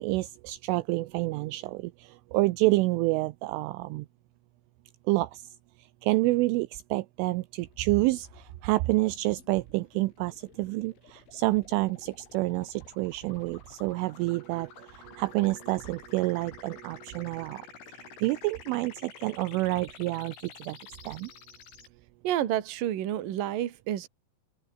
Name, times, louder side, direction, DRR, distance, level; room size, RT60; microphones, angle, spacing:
voice 1, 0.0-4.1 5.1-5.4 6.0-17.7 18.2-20.3 20.6-20.8 21.1-21.3, right 20 dB, 80° right, 3.1 m, -28 dB
sound 1, 7.7-21.9, left 6 dB, 65° left, 7.4 m, -51 dB
voice 2, 22.2-24.1, right 12 dB, 55° right, 3.0 m, -29 dB
omnidirectional pair, 5.9 m